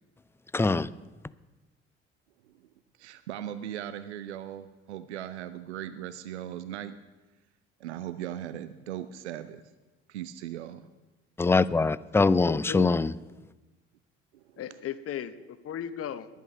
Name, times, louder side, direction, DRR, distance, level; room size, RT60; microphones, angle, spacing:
voice 1, 0.5-0.9 11.4-13.1, left 3 dB, 5° left, 18 dB, 0.4 m, -23 dB
voice 2, 3.0-7.0 7.8-9.6 10.1-10.9 14.3-14.6, right 11 dB, 80° right, 12 dB, 0.6 m, -38 dB
voice 3, 12.4-13.0 14.6-16.3, left 10 dB, 45° left, 13 dB, 1.0 m, -36 dB
21.5 x 8.4 x 5.4 m, 1.1 s
figure-of-eight pair, 50°, 33 cm